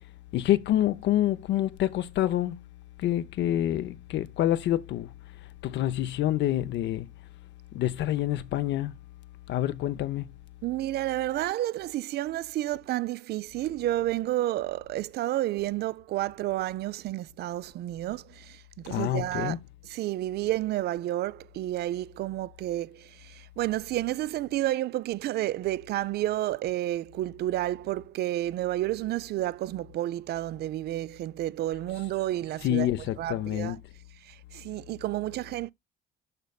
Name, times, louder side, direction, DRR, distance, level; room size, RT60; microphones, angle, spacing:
voice 1, 0.3-2.6 3.0-5.1 5.6-7.1 7.7-8.9 9.5-10.3 18.9-19.6 32.6-33.8, left 13 dB, 65° left, 0.7 m, -27 dB
voice 2, 10.6-19.6 19.9-32.9 33.2-33.8 34.2-35.7, right 14 dB, 55° right, 0.4 m, -30 dB
12.0 x 4.1 x 2.3 m
hypercardioid pair, 60°, 20 cm